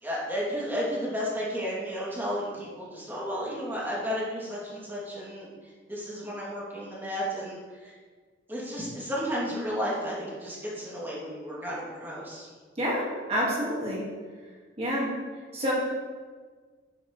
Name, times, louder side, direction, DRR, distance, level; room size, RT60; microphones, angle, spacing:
voice 1, 0.0-5.5 5.9-7.9 8.5-12.5, equal, 10° right, -6 dB, 2.7 m, -33 dB
voice 2, 12.8-14.0 14.8-15.1 15.5-15.7, equal, 30° right, -4 dB, 1.9 m, -28 dB
11.0 x 9.0 x 3.2 m, 1.5 s
head